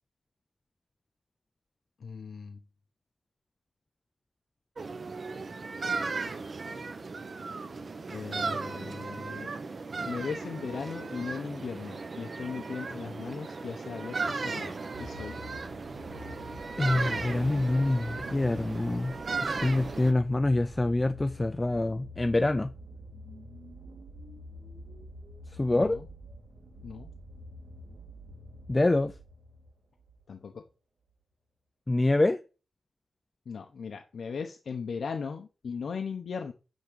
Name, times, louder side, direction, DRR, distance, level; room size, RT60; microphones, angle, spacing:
voice 1, 2.0-2.6 8.1-9.5 10.1-15.4 25.7-26.1 26.8-27.1 30.3-30.6 33.5-36.5, left 5 dB, 65° left, 0.8 m, -38 dB
sound 1, 4.8-20.1, right 4 dB, 40° right, 0.9 m, -36 dB
The Magnetic Field, 14.9-30.3 31.1-31.2, left 1 dB, 75° right, 2.8 m, -47 dB
voice 2, 16.8-22.7 25.6-26.0 28.7-29.1 31.9-32.4, left 2 dB, 20° left, 0.4 m, -26 dB
10.5 x 3.7 x 6.8 m
wide cardioid pair, 135°, 0 cm